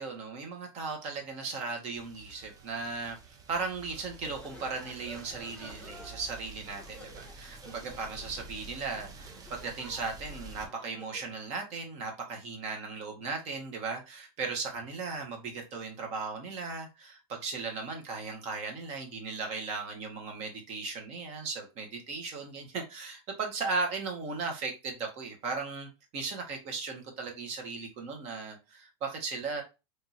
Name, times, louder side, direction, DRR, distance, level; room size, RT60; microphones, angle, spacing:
voice 1, 0.0-3.2 3.5-29.6, right 4 dB, 45° right, 2 dB, 1.4 m, -37 dB
sound 1, 1.9-10.7, right 3 dB, 25° right, 0.6 m, -49 dB
sound 2, 3.9-11.4, left 1 dB, 5° left, 0.9 m, -52 dB
3.5 x 3.0 x 2.6 m, 0.26 s
hypercardioid pair, 115°, 15 cm